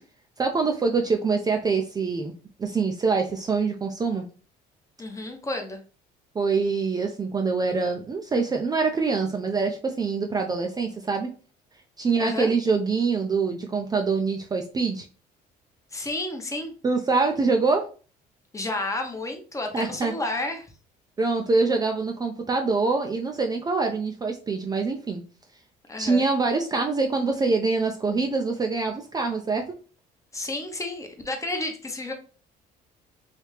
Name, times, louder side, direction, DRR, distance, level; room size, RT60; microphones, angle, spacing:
voice 1, 0.4-2.3 2.6-4.2 6.3-11.3 12.0-15.0 16.8-17.8 19.7-20.1 21.2-25.2 26.0-29.6, right 4 dB, 25° right, 3 dB, 0.4 m, -25 dB
voice 2, 5.0-5.8 12.2-12.5 15.9-16.7 18.5-20.7 25.9-26.3 30.3-32.1, left 2 dB, 20° left, 4 dB, 0.7 m, -31 dB
3.3 x 2.7 x 3.1 m, 0.39 s
cardioid pair, 110°, 17 cm